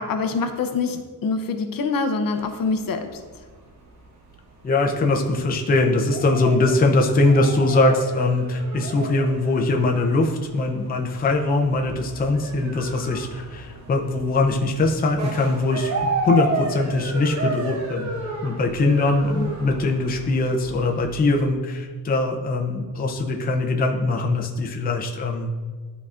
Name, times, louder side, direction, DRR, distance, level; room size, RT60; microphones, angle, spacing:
voice 1, 0.0-3.2, left 4 dB, 60° left, 6 dB, 0.7 m, -25 dB
sound 1, 2.3-21.4, right 2 dB, 45° right, 1.0 m, -33 dB
voice 2, 4.6-15.9 16.2-25.7, left 2 dB, 25° left, 1 dB, 0.5 m, -22 dB
12.0 x 4.0 x 2.5 m, 1.5 s
wide cardioid pair, 170°, 39 cm